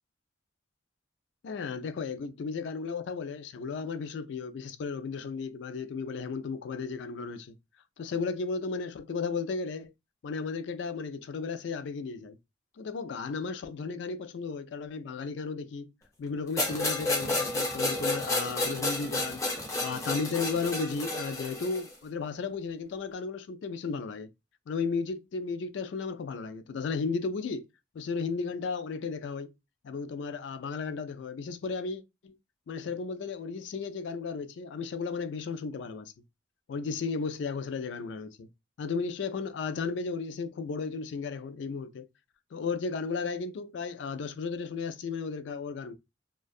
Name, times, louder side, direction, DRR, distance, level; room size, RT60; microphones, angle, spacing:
voice 1, 1.4-7.6 8.0-9.9 10.2-12.4 12.8-15.9 16.2-19.4 19.8-24.3 24.7-27.7 27.9-29.5 29.8-32.4 32.7-36.1 36.7-38.5 38.8-42.1 42.5-45.9, left 4 dB, 65° left, 0.3 m, -34 dB
sound 1, 16.6-21.9, left 2 dB, 15° left, 0.6 m, -31 dB
2.5 x 2.2 x 2.3 m
head